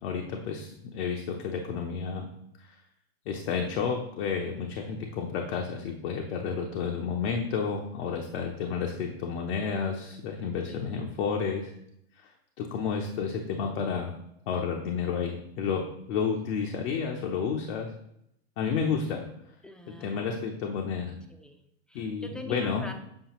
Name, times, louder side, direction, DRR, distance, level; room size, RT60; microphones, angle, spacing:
voice 1, 0.0-2.3 2.6-2.8 3.3-11.7 12.2-12.3 12.6-14.2 14.5-15.8 16.1-17.9 18.6-19.2 20.0-21.1 21.9-22.9, left 6 dB, 70° left, 2 dB, 0.9 m, -31 dB
voice 2, 19.6-20.4 21.3-21.6 21.9-22.9, equal, ahead, 5 dB, 0.4 m, -44 dB
7.7 x 4.7 x 3.0 m, 0.77 s
supercardioid pair, 125°, 33 cm